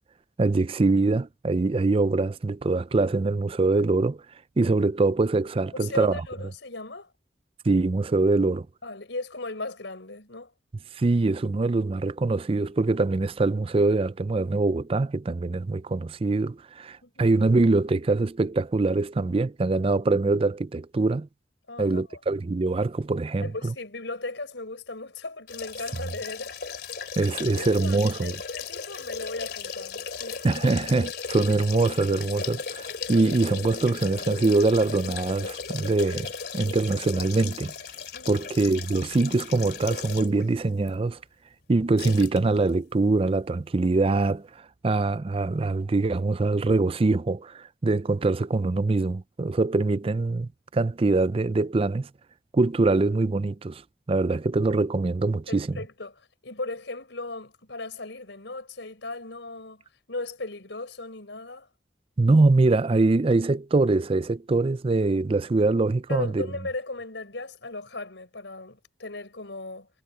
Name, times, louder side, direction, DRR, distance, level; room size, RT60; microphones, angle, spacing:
voice 1, 0.4-4.2 4.6-6.1 7.7-8.7 10.9-21.3 21.8-23.7 27.2-28.3 30.4-37.7 38.3-41.2 41.7-52.1 52.5-53.8 54.1-55.7 62.2-66.5, right 3 dB, 30° right, 0.4 m, -23 dB
voice 2, 5.7-7.1 8.8-10.5 17.0-17.3 21.7-22.2 23.4-26.5 27.6-30.4 38.1-38.5 55.5-61.7 66.1-69.9, left 2 dB, 90° left, 4.9 m, -37 dB
sound 1, 25.5-40.4 40.9-41.0 42.0-42.4 42.7-42.8, left 6 dB, 60° left, 3.0 m, -36 dB
head